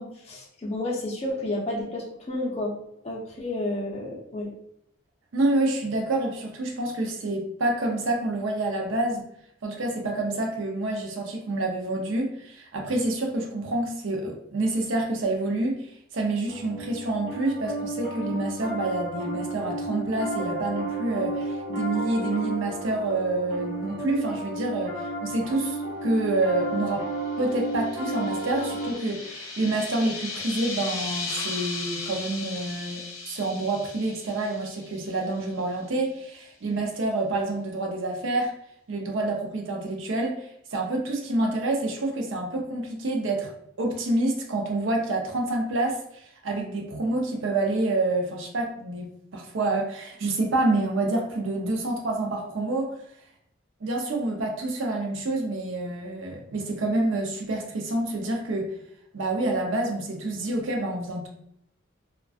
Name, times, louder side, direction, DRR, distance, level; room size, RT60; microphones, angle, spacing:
voice 1, 0.0-2.8 3.0-4.5, left 1 dB, 30° left, -3 dB, 0.4 m, -31 dB
voice 2, 5.3-9.2 9.6-27.1 27.4-38.5 38.9-43.5 43.8-52.9 53.8-58.7 59.1-61.3, right 2 dB, 70° right, 1 dB, 0.5 m, -28 dB
Piano, 16.5-28.9, right 1 dB, 50° right, 1.4 m, -32 dB
sound 1, 27.2-35.5, left 3 dB, 85° left, 0.5 m, -37 dB
2.4 x 2.2 x 2.3 m, 0.74 s
head